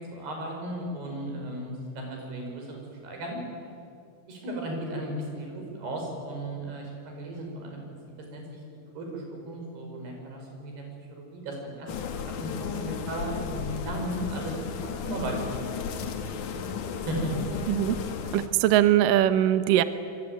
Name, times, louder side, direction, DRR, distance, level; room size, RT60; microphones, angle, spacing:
voice 1, 0.1-3.4 4.3-7.8 8.3-8.4 9.0-10.8 11.1-15.4 16.0-16.1 16.5-16.6 16.9-17.3, right 1 dB, 55° right, 1 dB, 7.5 m, -35 dB
sound 1, 11.9-18.5, left 6 dB, 60° left, 2.2 m, -34 dB
voice 2, 18.3-19.8, right 12 dB, 90° right, 11 dB, 1.9 m, -21 dB
26.5 x 23.0 x 9.2 m, 2.5 s
omnidirectional pair, 5.5 m